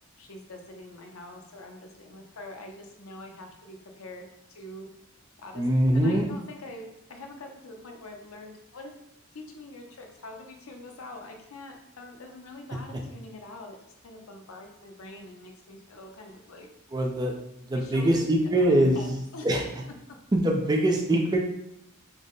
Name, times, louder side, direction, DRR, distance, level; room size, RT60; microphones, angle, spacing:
voice 1, 0.2-4.9 5.4-5.7 5.9-9.0 9.5-13.8 14.0-16.7 17.7-18.2 18.6-19.5, left 2 dB, 80° left, 3 dB, 0.6 m, -44 dB
voice 2, 5.5-6.3 16.9-17.3 17.7-19.2 19.4-19.6 20.3-21.4, right 1 dB, 20° right, 1 dB, 0.4 m, -23 dB
3.6 x 2.1 x 3.7 m, 0.80 s
head